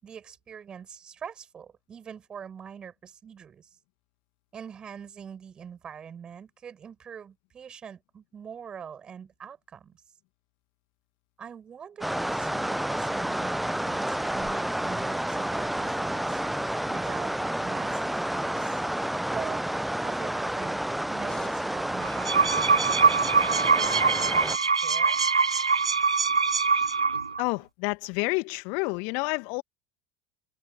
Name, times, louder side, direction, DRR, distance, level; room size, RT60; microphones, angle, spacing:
voice 1, 0.0-3.7 4.5-10.0 11.4-17.3 17.6-18.8 19.3-20.8 21.1-25.2, right 7 dB, 30° right, 7.2 m, -43 dB
sound 1, 12.0-24.6, right 1 dB, 5° right, 0.7 m, -30 dB
sound 2, 21.3-23.8 24.3-24.4, left 7 dB, 25° left, 5.9 m, -52 dB
sound 3, 22.0-27.4, right 5 dB, 85° right, 0.4 m, -23 dB
voice 2, 27.4-29.6, left 33 dB, 55° left, 1.8 m, -29 dB
figure-of-eight pair, 75°, 3 cm